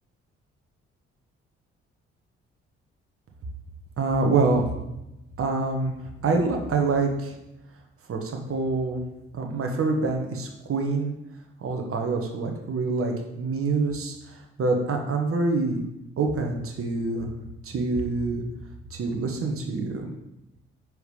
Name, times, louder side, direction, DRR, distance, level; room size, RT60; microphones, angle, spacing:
voice 1, 4.0-4.6 5.4-5.9 6.2-7.3 8.1-9.0 9.3-11.1 11.6-15.8 16.2-17.3 17.6-18.4 18.9-20.1, right 3 dB, 50° right, 2 dB, 1.2 m, -26 dB
5.0 x 4.9 x 4.9 m, 0.91 s
hypercardioid pair, 50°, 29 cm